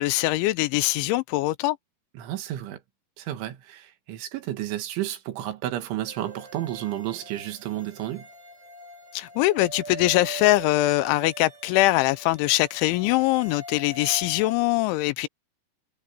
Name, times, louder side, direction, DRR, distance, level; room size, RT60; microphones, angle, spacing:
voice 1, 0.0-1.8 9.1-15.3, left 18 dB, 85° left, 3.0 m, -22 dB
voice 2, 2.2-2.8 3.2-8.3, right 13 dB, 75° right, 4.1 m, -32 dB
sound 1, 6.1-14.6, right 1 dB, 35° right, 8.7 m, -42 dB
omnidirectional pair, 5.5 m